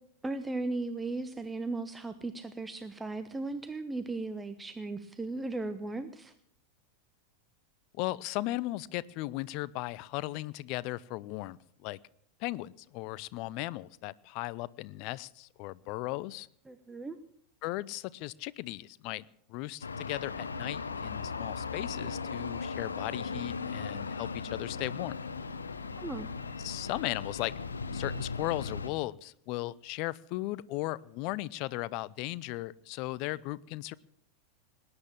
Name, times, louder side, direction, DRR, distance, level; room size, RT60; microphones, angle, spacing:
voice 1, 0.2-6.3 16.7-17.2 26.0-26.3, right 3 dB, 10° right, 10 dB, 0.9 m, -36 dB
voice 2, 7.9-12.0 12.4-16.5 17.6-19.2 19.5-25.2 26.6-27.5 27.9-33.9, left 18 dB, 45° left, 20 dB, 0.5 m, -37 dB
sound 1, 19.8-28.9, left 4 dB, 75° left, 0.9 m, -37 dB
19.5 x 9.7 x 7.1 m, 0.67 s
figure-of-eight pair, 90°, 0 cm